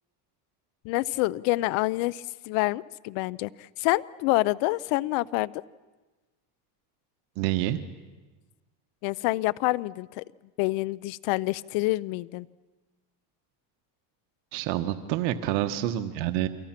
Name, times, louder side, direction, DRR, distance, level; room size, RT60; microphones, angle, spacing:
voice 1, 0.8-5.5 9.0-10.2 10.6-12.5, left 20 dB, 65° left, 19 dB, 0.8 m, -27 dB
voice 2, 7.4-7.8 14.5-16.5, right 13 dB, 85° right, 9 dB, 1.4 m, -27 dB
29.5 x 24.0 x 6.0 m, 1.3 s
cardioid pair, 155°, 50 cm